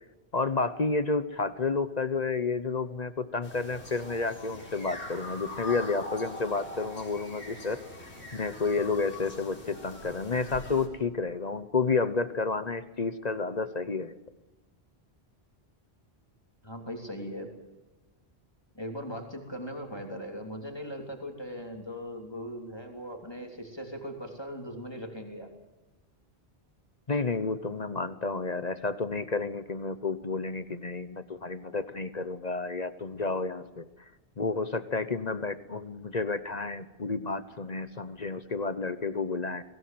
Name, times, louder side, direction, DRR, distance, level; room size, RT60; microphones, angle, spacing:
voice 1, 0.3-7.8 8.3-14.1 27.1-33.9 34.4-39.6, left 4 dB, 40° left, 12 dB, 1.0 m, -30 dB
Morning Chorus, 3.4-10.9, left 2 dB, 90° left, 4.9 m, -43 dB
voice 2, 16.6-17.5 18.7-25.5, equal, 25° left, 2 dB, 3.3 m, -39 dB
24.0 x 17.5 x 7.8 m, 1.1 s
omnidirectional pair, 1.1 m